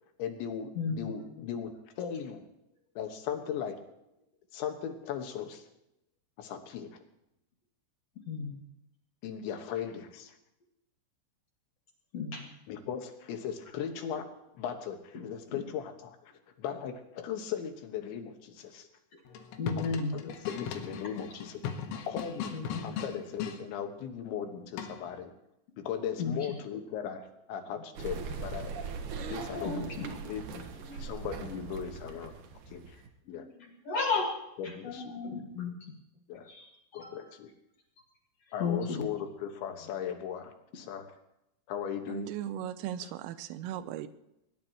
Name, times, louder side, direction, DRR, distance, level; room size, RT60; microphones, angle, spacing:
voice 1, 0.2-2.4 3.0-3.8 4.5-5.6 6.4-7.0 9.2-10.3 12.7-14.3 14.6-16.3 16.6-18.9 19.8-19.9 20.1-21.6 22.1-25.3 25.8-28.7 29.3-29.9 30.2-30.6 31.0-32.3 32.7-33.0 33.3-33.5 34.6-35.1 36.3-36.5 36.9-37.5 38.5-41.1 41.7-42.3, left 8 dB, 70° left, 6 dB, 3.6 m, -38 dB
voice 2, 0.8-1.1 8.3-8.6 12.1-12.5 15.1-15.6 19.1-20.2 22.5-23.0 26.2-26.6 29.5-30.1 30.8-31.1 33.3-34.3 34.6-35.7 36.5-37.2 38.6-39.1, left 4 dB, 50° left, 1 dB, 2.0 m, -35 dB
sound 1, 19.3-23.6 24.8-25.2, left 7 dB, 90° left, 3.9 m, -38 dB
sound 2, 27.9-33.1, right 5 dB, 75° right, 1.8 m, -40 dB
voice 3, 42.1-44.1, right 11 dB, 90° right, 12 dB, 3.4 m, -37 dB
21.0 x 20.0 x 3.0 m, 0.85 s
omnidirectional pair, 5.7 m